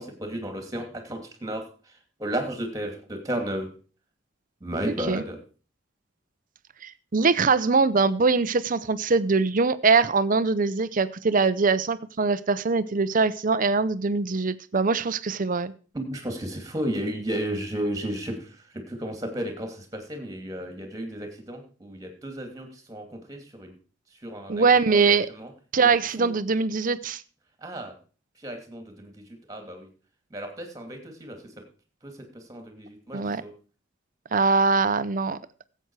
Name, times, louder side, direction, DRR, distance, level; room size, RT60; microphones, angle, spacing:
voice 1, 0.0-1.7 2.2-3.7 4.6-5.4 15.9-23.7 24.2-25.5 25.8-26.3 27.6-27.9 28.4-29.9 30.3-31.4 32.0-33.5, right 1 dB, 20° right, 5 dB, 2.5 m, -33 dB
voice 2, 6.8-15.7 24.5-25.3 25.7-27.2 33.1-33.4 34.3-35.4, right 4 dB, 45° right, 15 dB, 0.7 m, -22 dB
16.0 x 7.9 x 4.7 m, 0.38 s
head